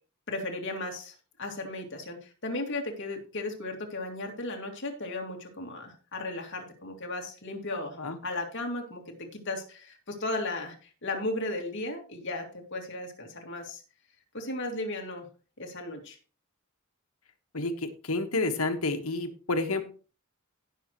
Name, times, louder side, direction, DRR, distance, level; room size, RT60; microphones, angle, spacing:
voice 1, 0.3-8.0 8.2-13.8 14.3-15.3 15.6-16.2, left 2 dB, 60° left, 2 dB, 2.5 m, -35 dB
voice 2, 17.5-19.8, left 2 dB, 85° left, 6 dB, 1.6 m, -29 dB
17.5 x 6.4 x 3.1 m, 0.36 s
head